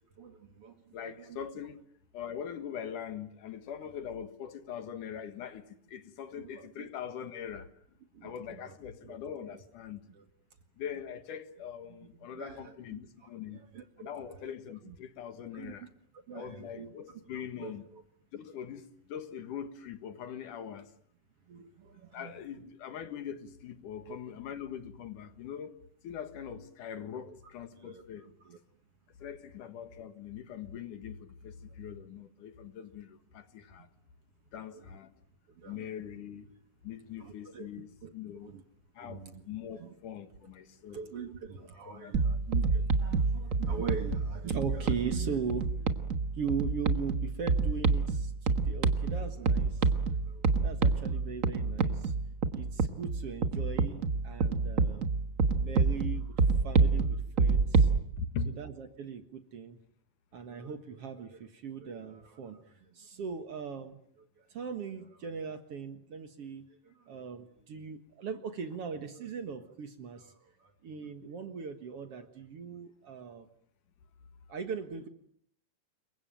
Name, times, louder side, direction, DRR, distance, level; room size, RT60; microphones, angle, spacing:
voice 1, 0.2-1.4 6.4-6.9 8.1-8.8 9.0-9.2 10.1-10.2 12.3-13.0 13.5-14.4 14.8-15.0 15.5-15.9 16.3-16.9 17.3-18.0 21.5-22.3 24.0-24.2 27.3-27.4 27.8-28.6 34.7-35.0 35.6-35.9 37.2-37.7 38.0-38.1 38.4-38.6 39.0-39.4 39.7-39.9 40.9-45.9 46.3-52.2 52.5-55.1 55.6-57.9 58.6-59.8 60.3-73.5 74.5-75.1, right 6 dB, 55° right, 2.2 m, -41 dB
voice 2, 0.9-1.8 2.1-7.7 8.2-10.0 10.8-13.6 14.0-15.9 16.3-17.8 18.3-20.9 22.1-25.7 26.0-28.2 29.2-33.9 34.5-35.1 35.6-36.5 36.8-38.5 39.0-41.0 41.9-42.4 58.2-58.5, left 8 dB, 70° left, 3.1 m, -42 dB
sound 1, 42.1-58.0, right 4 dB, 70° right, 0.7 m, -28 dB
28.0 x 23.5 x 9.1 m
omnidirectional pair, 3.8 m